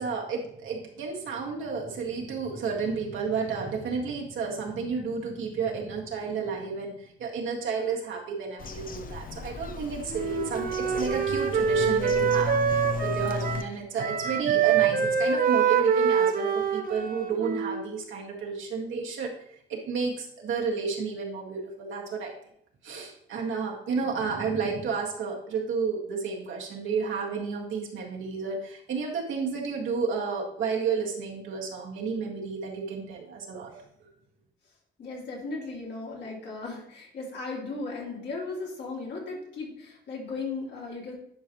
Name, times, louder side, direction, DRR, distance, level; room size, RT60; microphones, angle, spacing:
voice 1, 0.0-19.3 19.7-22.3 22.8-33.8, right 5 dB, 75° right, -1 dB, 1.8 m, -31 dB
Bird vocalization bird call bird song, 8.6-13.6, left 5 dB, 45° left, 0.7 m, -35 dB
Wind instrument woodwind instrument, 10.1-13.7 14.0-17.9, right 7 dB, 45° right, 0.8 m, -25 dB
voice 2, 35.0-41.1, left 3 dB, 60° left, -3 dB, 2.9 m, -36 dB
10.5 x 5.1 x 3.1 m, 0.70 s
cardioid pair, 90°, 20 cm